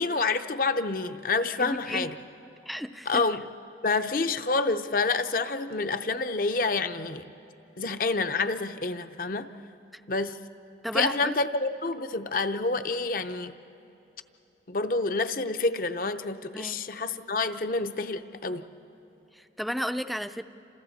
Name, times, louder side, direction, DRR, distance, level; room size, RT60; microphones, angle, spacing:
voice 1, 0.0-2.2 3.1-3.4 3.8-7.2 7.8-9.5 10.1-10.4 10.9-13.5 14.7-18.6, left 3 dB, 50° left, 9 dB, 0.7 m, -28 dB
voice 2, 1.6-2.1 2.6-3.2 9.6-10.0 10.8-11.3 16.5-16.8 19.3-20.4, equal, ahead, 10 dB, 0.4 m, -33 dB
29.5 x 27.0 x 4.2 m, 2.9 s
head